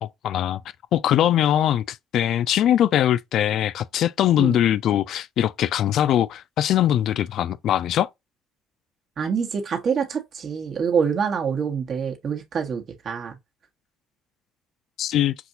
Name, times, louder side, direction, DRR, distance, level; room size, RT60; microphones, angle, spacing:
voice 1, 0.0-0.6 0.9-8.1 15.0-15.3, left 11 dB, 65° left, 0.3 m, -21 dB
voice 2, 9.2-13.3, right 6 dB, 50° right, 1.4 m, -26 dB
5.9 x 2.7 x 2.6 m
supercardioid pair, 75°, 0 cm